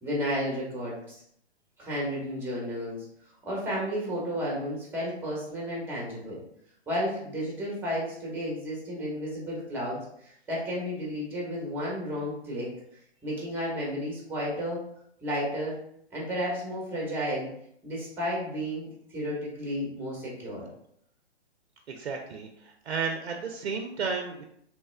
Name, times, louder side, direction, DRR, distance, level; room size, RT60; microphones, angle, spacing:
voice 1, 0.0-1.2 1.8-3.0 3.4-6.4 6.9-12.7 13.2-14.8 15.2-15.7 16.1-17.5 17.8-18.9 19.1-20.7, equal, 5° right, -4 dB, 0.9 m, -32 dB
voice 2, 21.9-24.4, right 5 dB, 70° right, 3 dB, 0.5 m, -33 dB
3.1 x 2.1 x 3.2 m, 0.70 s
hypercardioid pair, 130°, 33 cm